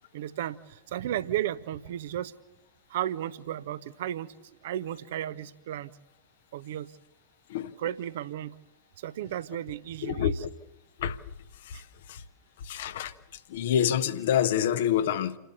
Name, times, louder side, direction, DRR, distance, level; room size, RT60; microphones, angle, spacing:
voice 1, 0.1-2.3 2.9-4.3 4.6-5.9 6.5-6.9 7.8-8.5 9.0-10.4, right 12 dB, 55° right, 0.7 m, -34 dB
voice 2, 10.0-10.5 11.0-11.2 11.7-11.8 12.1-12.2 12.6-13.1 13.5-15.4, left 9 dB, 55° left, 0.9 m, -27 dB
28.5 x 11.5 x 8.3 m
figure-of-eight pair, 90°, 0 cm